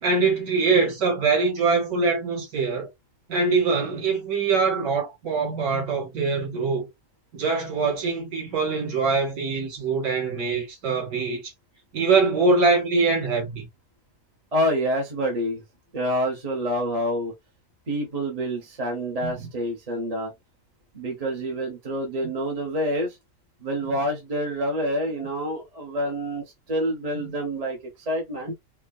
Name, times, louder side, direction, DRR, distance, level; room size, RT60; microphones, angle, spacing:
voice 1, 0.0-2.9 3.3-6.9 7.3-11.4 11.9-13.7 19.2-19.3, right 4 dB, 75° right, 2.4 m, -23 dB
voice 2, 14.5-15.6 15.9-17.3 17.9-20.3 20.9-23.2 23.6-28.5, equal, 30° right, 0.8 m, -27 dB
4.6 x 2.2 x 2.5 m
omnidirectional pair, 1.5 m